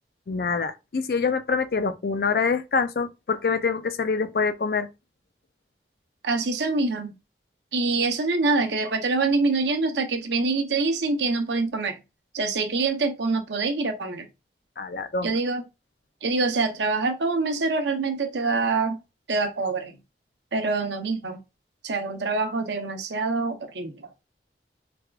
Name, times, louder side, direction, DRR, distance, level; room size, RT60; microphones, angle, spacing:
voice 1, 0.3-4.9 14.8-15.4, left 5 dB, 55° left, 0.4 m, -25 dB
voice 2, 6.2-7.1 7.7-12.0 12.3-14.3 15.2-15.6 16.2-19.0 19.3-19.9 20.5-21.4 21.8-24.0, right 3 dB, 85° right, 0.7 m, -25 dB
3.4 x 2.3 x 3.4 m
head